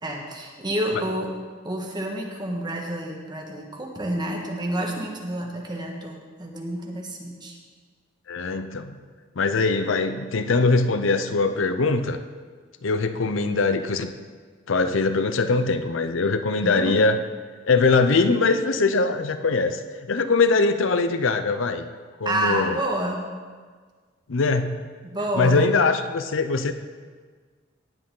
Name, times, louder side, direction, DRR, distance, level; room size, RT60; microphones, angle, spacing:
voice 1, 0.0-1.3 1.6-7.6 16.6-17.1 22.2-23.2 25.0-25.7, right 1 dB, 20° right, 0 dB, 1.6 m, -29 dB
voice 2, 8.3-9.0 9.4-12.2 12.8-14.1 14.7-17.2 17.7-19.8 20.1-21.9 22.2-22.8 24.3-24.8 25.3-26.7, left 3 dB, 75° left, 10 dB, 0.6 m, -22 dB
18.0 x 7.9 x 3.8 m, 1.5 s
head